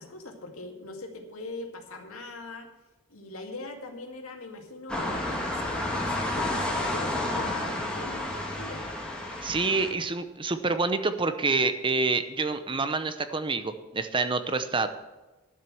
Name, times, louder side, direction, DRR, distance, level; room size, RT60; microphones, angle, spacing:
voice 1, 0.0-2.7 3.1-8.8, left 2 dB, 80° left, 3 dB, 2.3 m, -41 dB
sound 1, 4.9-9.9, left 1 dB, 5° left, 2.0 m, -31 dB
voice 2, 9.4-14.9, right 3 dB, 25° right, 10 dB, 0.7 m, -27 dB
12.0 x 7.5 x 7.6 m, 1.1 s
head